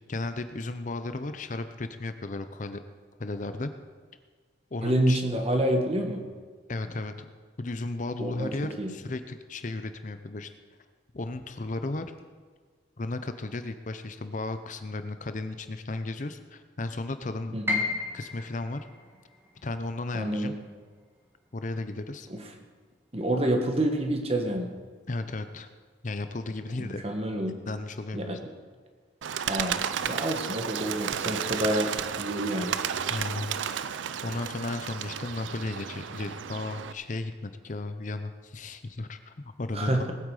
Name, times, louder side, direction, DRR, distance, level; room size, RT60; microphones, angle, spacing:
voice 1, 0.1-2.8 3.2-3.7 4.7-5.2 6.7-7.2 7.6-10.5 11.1-12.1 13.0-17.5 18.1-18.9 19.6-20.5 21.5-22.3 25.1-25.7 26.0-27.0 27.7-28.4 33.1-33.6 33.9-40.0, left 2 dB, 45° left, 9 dB, 0.6 m, -34 dB
voice 2, 4.8-6.3 8.2-8.5 8.8-8.9 17.5-17.8 20.1-20.5 22.3-22.4 23.1-24.7 26.8-27.6 28.1-28.4 29.5-29.8 30.1-32.7 39.7-40.1, right 1 dB, 35° right, 4 dB, 1.5 m, -28 dB
Piano, 17.7-23.6 23.9-25.1 25.5-25.6 26.3-26.6, left 3 dB, 10° right, 1.6 m, -36 dB
Bird, 29.2-36.9, right 8 dB, 90° right, 0.5 m, -33 dB
19.5 x 8.7 x 4.9 m, 1.5 s
head